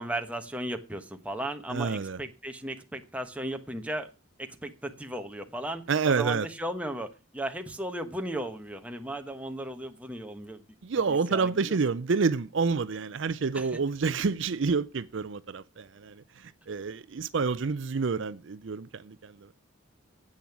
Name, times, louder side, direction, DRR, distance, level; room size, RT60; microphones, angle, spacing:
voice 1, 0.0-4.1 4.4-10.6 11.3-11.8 13.5-13.7, right 1 dB, 5° right, 1.1 m, -36 dB
voice 2, 1.7-2.2 5.9-6.5 10.8-19.5, right 4 dB, 60° right, 0.5 m, -28 dB
10.5 x 8.6 x 5.9 m
head